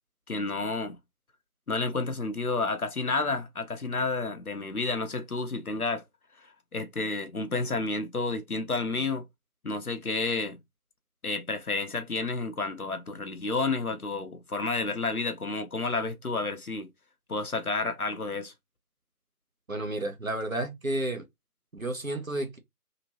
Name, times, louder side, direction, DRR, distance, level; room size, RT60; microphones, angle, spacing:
voice 1, 0.3-1.0 1.7-6.0 6.4-9.3 9.6-10.6 11.2-16.9 17.3-18.5, left 3 dB, 65° left, 0.8 m, -30 dB
voice 2, 19.7-21.3 21.7-22.6, right 1 dB, 60° right, 0.9 m, -31 dB
2.9 x 2.9 x 2.9 m
figure-of-eight pair, 180°, 46 cm